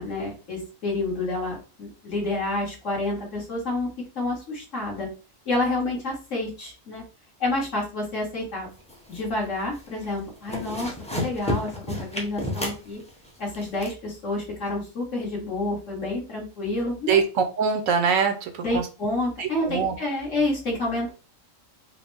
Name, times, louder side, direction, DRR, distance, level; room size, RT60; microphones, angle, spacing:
voice 1, 0.0-3.9 4.2-5.1 5.5-7.0 7.4-8.7 9.1-13.0 13.4-17.2 18.6-21.1, left 2 dB, 65° left, -4 dB, 2.2 m, -29 dB
sound 1, 8.8-9.4 9.8-10.1 10.4-13.9, left 1 dB, 5° left, 0.6 m, -31 dB
voice 2, 17.1-18.9 19.4-19.9, right 6 dB, 75° right, 6 dB, 1.0 m, -23 dB
4.8 x 2.2 x 3.4 m, 0.34 s
omnidirectional pair, 1.4 m